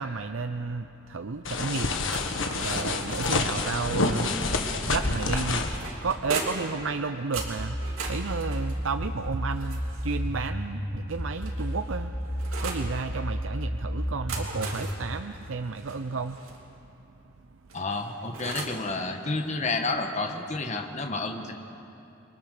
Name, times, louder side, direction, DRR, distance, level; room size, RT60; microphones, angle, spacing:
voice 1, 0.0-2.0 2.5-4.3 4.8-5.7 6.0-7.8 8.1-12.1 12.6-16.4, right 4 dB, 70° right, 9 dB, 0.6 m, -32 dB
sound 1, 1.4-5.8, left 3 dB, 65° left, 1.7 m, -28 dB
sound 2, 2.1-3.6 5.0-6.8 7.3-10.3 11.1-12.9 14.0-16.6 17.7-18.9, right 4 dB, 90° right, 3.2 m, -39 dB
sound 3, 7.4-15.0, equal, ahead, 2.4 m, -32 dB
voice 2, 17.7-21.5, left 3 dB, 35° left, 4 dB, 1.4 m, -30 dB
29.5 x 21.5 x 6.6 m, 2.8 s
head